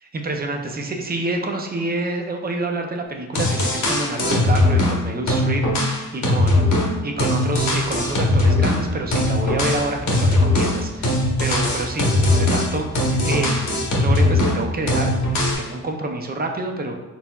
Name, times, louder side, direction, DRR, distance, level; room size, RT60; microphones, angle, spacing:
voice 1, 0.0-6.7 7.0-15.1 15.4-16.9, right 2 dB, 30° right, 3 dB, 0.4 m, -28 dB
sound 1, 3.1-3.2 3.3-5.0 5.3-8.8 9.1-14.6 14.9-15.6, left 1 dB, 60° left, 1.1 m, -20 dB
sound 2, 7.7-15.5, equal, 15° left, 1.0 m, -35 dB
4.3 x 4.0 x 2.3 m, 1.1 s
wide cardioid pair, 155°, 32 cm